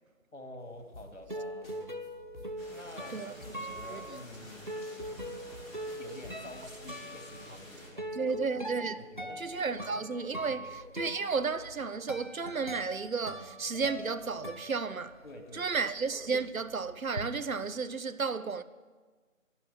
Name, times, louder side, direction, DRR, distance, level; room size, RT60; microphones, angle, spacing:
voice 1, 0.3-1.8 2.7-3.3 3.6-4.7 6.0-8.4 9.0-9.9 10.4-11.1 15.2-15.9, left 1 dB, 60° left, 2.3 m, -49 dB
sound 1, 0.7-15.5 15.8-17.3, equal, 35° right, 0.7 m, -42 dB
sound 2, 0.9-1.4 1.6-1.7 2.0-2.1 2.3-2.8 3.0-4.2 4.5-4.6 4.8-6.5, left 2 dB, 5° left, 2.6 m, -51 dB
sound 3, 2.6-7.9, left 1 dB, 10° right, 1.8 m, -51 dB
voice 2, 3.1-4.0 8.1-9.0 9.4-15.2 15.5-18.6, right 4 dB, 80° right, 0.8 m, -33 dB
12.0 x 11.0 x 7.1 m
figure-of-eight pair, 175°, 41 cm